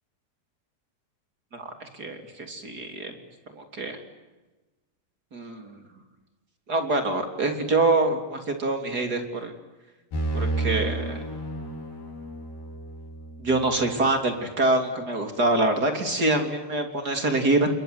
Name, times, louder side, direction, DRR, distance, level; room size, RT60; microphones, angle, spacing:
voice 1, 1.5-3.1 3.6-4.0 5.3-5.8 6.7-9.5 10.3-11.2 13.4-17.7, right 2 dB, 25° right, 5 dB, 3.1 m, -25 dB
sound 1, 10.1-13.9, right 2 dB, 60° left, 6.0 m, -31 dB
28.0 x 22.0 x 9.6 m, 1.2 s
omnidirectional pair, 4.9 m